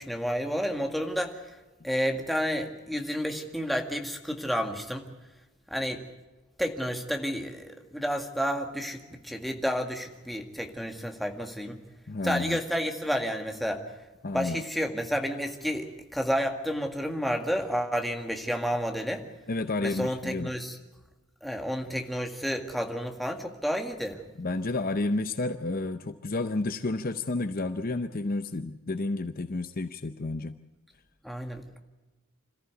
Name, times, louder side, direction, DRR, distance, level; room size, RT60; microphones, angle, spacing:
voice 1, 0.0-1.6 1.8-5.1 5.7-6.0 6.6-11.8 12.2-13.8 14.3-19.3 19.8-20.8 21.4-24.2 31.2-31.8, equal, ahead, 3 dB, 1.9 m, -30 dB
voice 2, 12.1-12.6 14.2-14.6 19.5-20.5 24.4-30.6, left 2 dB, 40° left, 10 dB, 0.7 m, -31 dB
27.0 x 14.5 x 8.2 m, 1.1 s
head